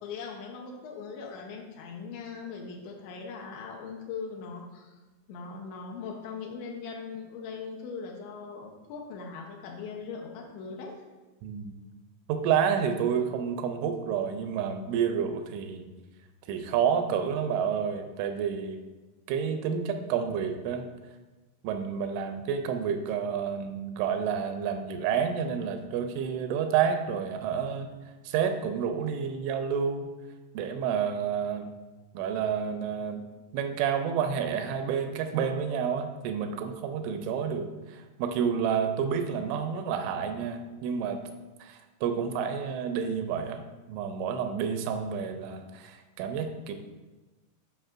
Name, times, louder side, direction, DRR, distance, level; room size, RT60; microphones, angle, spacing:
voice 1, 0.0-5.0 5.3-11.0, left 5 dB, 80° left, 0 dB, 3.0 m, -40 dB
voice 2, 11.4-11.7 12.3-15.9 16.5-18.8 19.3-20.8 21.6-27.9 28.2-30.1 30.5-31.7 32.1-33.2 33.5-41.2 41.6-43.6 43.9-46.7, right 7 dB, 90° right, 7 dB, 3.0 m, -29 dB
10.5 x 4.9 x 2.5 m, 1.2 s
omnidirectional pair, 5.4 m